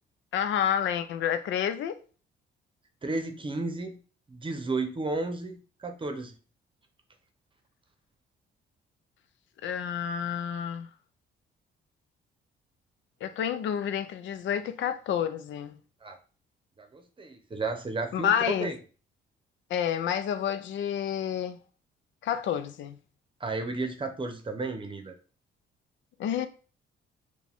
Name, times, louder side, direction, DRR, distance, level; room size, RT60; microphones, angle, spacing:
voice 1, 0.3-2.0 9.6-10.9 13.2-15.8 18.1-18.7 19.7-21.6 22.2-23.0 26.2-26.5, left 9 dB, 70° left, 0.5 m, -29 dB
voice 2, 3.0-4.0 4.3-6.3 16.0-16.2 16.8-18.8 23.4-25.1, right 3 dB, 25° right, 0.8 m, -33 dB
4.7 x 2.3 x 3.5 m
cardioid pair, 90°, 20 cm